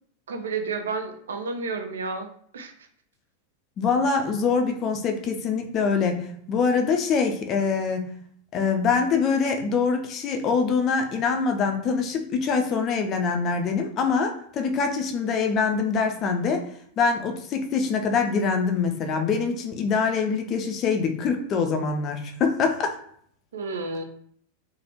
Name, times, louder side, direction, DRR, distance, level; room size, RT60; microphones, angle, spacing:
voice 1, 0.3-2.3 2.5-2.7 23.5-24.0, right 4 dB, 65° right, 7 dB, 0.4 m, -31 dB
voice 2, 3.8-6.2 6.5-8.1 8.5-16.7 17.0-23.0, left 5 dB, 30° left, 5 dB, 0.4 m, -24 dB
3.2 x 2.2 x 2.9 m, 0.63 s
figure-of-eight pair, 90°, 0 cm